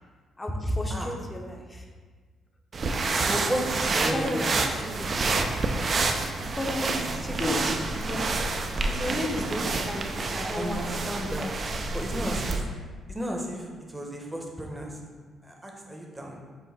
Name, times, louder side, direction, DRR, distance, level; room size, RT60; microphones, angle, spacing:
voice 1, 0.4-1.8 4.0-5.3 6.6-7.0 7.3-7.6 7.9-8.2 8.9-10.8, left 1 dB, 20° left, 1 dB, 0.7 m, -33 dB
sound 1, 2.7-12.6, right 3 dB, 45° right, 0.4 m, -28 dB
voice 2, 3.2-4.9 7.0-7.6 10.3-11.5 11.9-12.7 13.1-15.1 15.4-16.4, right 1 dB, 15° right, 0 dB, 0.8 m, -34 dB
5.8 x 2.1 x 4.1 m, 1.5 s
cardioid pair, 90°, 0 cm